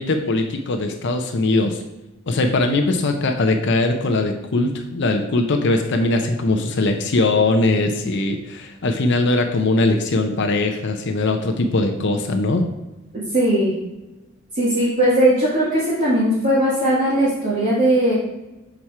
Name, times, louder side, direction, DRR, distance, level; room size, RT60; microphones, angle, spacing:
voice 1, 0.0-1.8 2.3-12.6, left 2 dB, 55° left, 4 dB, 0.6 m, -20 dB
voice 2, 13.3-13.7 14.5-18.1, right 1 dB, 45° right, -9 dB, 1.6 m, -18 dB
6.1 x 4.3 x 4.7 m, 1.0 s
head